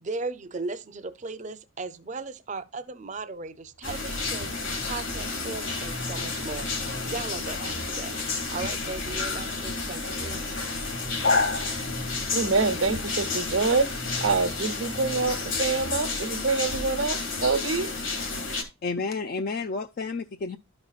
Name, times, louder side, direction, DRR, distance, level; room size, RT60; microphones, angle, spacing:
voice 1, 0.0-4.5 4.8-6.7 7.1-8.2 8.5-10.4, right 3 dB, 35° right, 0.6 m, -36 dB
sound 1, 3.5-16.5, equal, 90° left, 3.0 m, -42 dB
sound 2, 3.8-18.6, left 3 dB, 70° left, 1.8 m, -30 dB
voice 2, 12.3-17.9, right 4 dB, 80° right, 1.1 m, -26 dB
voice 3, 18.8-20.6, left 4 dB, 45° left, 0.3 m, -30 dB
12.0 x 5.3 x 2.4 m
head